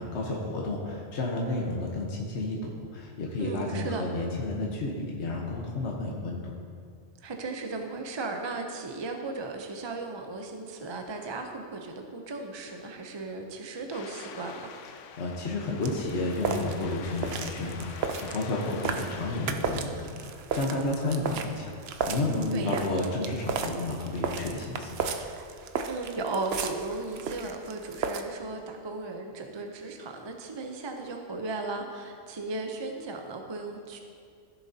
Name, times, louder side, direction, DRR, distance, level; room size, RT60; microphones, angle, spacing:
voice 1, 0.0-6.4 14.9-21.7 22.1-24.9, left 2 dB, 65° left, -1 dB, 1.3 m, -31 dB
voice 2, 3.4-4.0 7.2-14.7 22.5-22.9 25.9-34.0, right 3 dB, 30° right, 3 dB, 0.5 m, -36 dB
sound 1, 13.9-19.5, left 7 dB, 90° left, 0.9 m, -45 dB
sound 2, 15.8-28.2, right 5 dB, 65° right, 0.8 m, -34 dB
15.5 x 7.0 x 2.7 m, 2.3 s
omnidirectional pair, 1.2 m